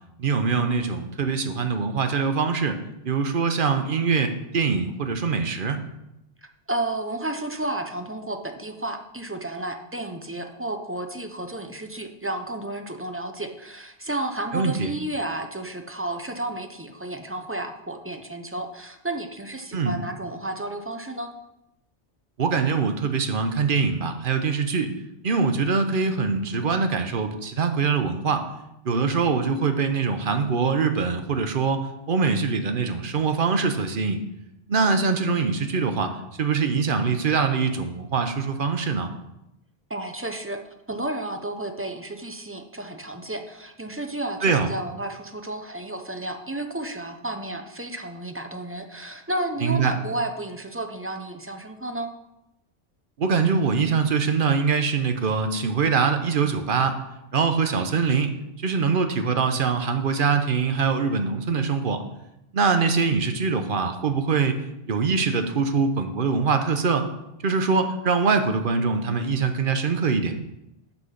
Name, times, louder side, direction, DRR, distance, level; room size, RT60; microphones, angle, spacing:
voice 1, 0.2-2.8 3.0-5.8 14.5-14.9 19.7-20.0 22.4-24.9 25.2-28.4 28.8-34.2 34.7-36.1 36.4-39.1 44.4-44.7 49.6-49.9 53.2-57.0 57.3-62.0 62.5-67.1 67.4-70.4, right 5 dB, 55° right, 7 dB, 1.0 m, -23 dB
voice 2, 6.4-21.3 39.9-40.6 40.9-52.1, right 1 dB, 15° right, 5 dB, 0.7 m, -32 dB
8.2 x 6.1 x 5.8 m, 0.87 s
omnidirectional pair, 1.1 m